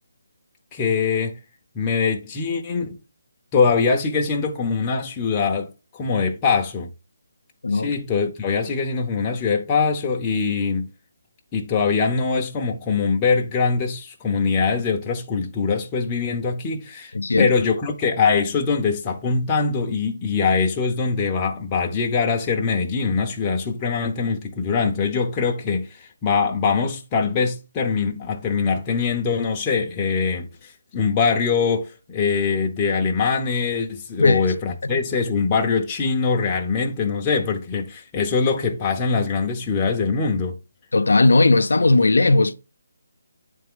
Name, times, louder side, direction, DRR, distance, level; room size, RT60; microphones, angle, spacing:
voice 1, 0.7-1.4 1.7-3.0 3.5-6.9 7.7-10.9 11.5-40.6, left 5 dB, 15° left, 0.7 m, -23 dB
voice 2, 7.6-7.9 17.1-17.5 34.2-34.4 34.9-35.0 40.9-42.5, left 2 dB, 80° left, 0.5 m, -17 dB
8.4 x 3.4 x 3.7 m
hypercardioid pair, 170°, 0 cm